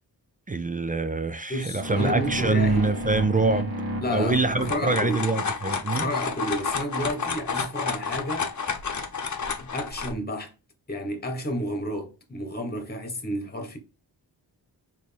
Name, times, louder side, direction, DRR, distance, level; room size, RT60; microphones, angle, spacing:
voice 1, 0.5-3.8 4.1-6.1, right 3 dB, 20° right, 0.4 m, -25 dB
voice 2, 1.5-2.9 4.0-5.2 5.9-8.5 9.7-10.5 10.9-13.8, equal, 20° left, 1.2 m, -31 dB
sound 1, 1.8-5.9, equal, 60° right, 1.8 m, -33 dB
sound 2, 4.3-10.1, left 5 dB, 45° left, 0.9 m, -30 dB
4.3 x 3.1 x 3.4 m
wide cardioid pair, 85°, 42 cm